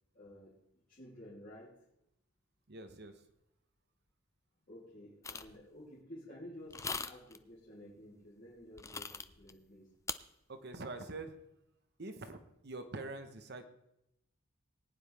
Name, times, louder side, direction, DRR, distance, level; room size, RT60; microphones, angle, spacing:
voice 1, 0.1-0.5 0.9-1.7 4.7-9.9, left 1 dB, 40° left, -9 dB, 3.1 m, -52 dB
voice 2, 2.7-3.2 10.5-11.4 12.0-13.6, right 2 dB, 50° right, 8 dB, 1.0 m, -45 dB
sound 1, 5.2-5.6 6.7-7.4 8.8-9.5 10.1-10.2, left 5 dB, 15° left, 0.4 m, -40 dB
19.5 x 9.6 x 3.5 m, 0.83 s
head